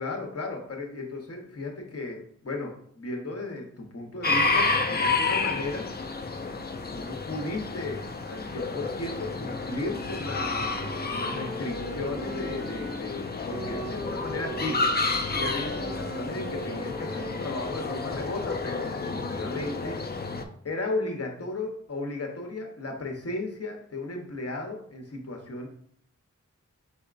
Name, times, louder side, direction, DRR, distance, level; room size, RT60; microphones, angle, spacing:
voice 1, 0.0-5.9 6.9-20.1 20.6-25.7, left 2 dB, 55° left, 2 dB, 0.9 m, -35 dB
sound 1, 4.2-20.4, left 3 dB, 30° left, 0.5 m, -30 dB
Wind instrument woodwind instrument, 10.7-18.3, right 3 dB, 85° right, 1.0 m, -40 dB
4.3 x 4.1 x 2.4 m, 0.62 s
wide cardioid pair, 70°, 30 cm